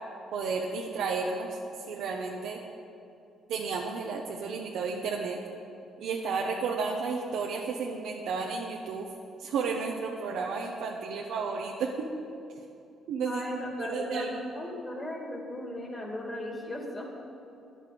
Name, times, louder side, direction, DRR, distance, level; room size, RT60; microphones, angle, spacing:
voice 1, 0.3-1.5 1.9-2.6 3.5-5.4 6.0-9.1 9.4-12.1 13.1-13.4 13.8-14.5, right 5 dB, 80° right, 0 dB, 0.9 m, -32 dB
voice 2, 13.2-17.1, left 1 dB, 20° left, 0 dB, 2.5 m, -36 dB
10.5 x 8.2 x 7.7 m, 2.7 s
cardioid pair, 85°, 0 cm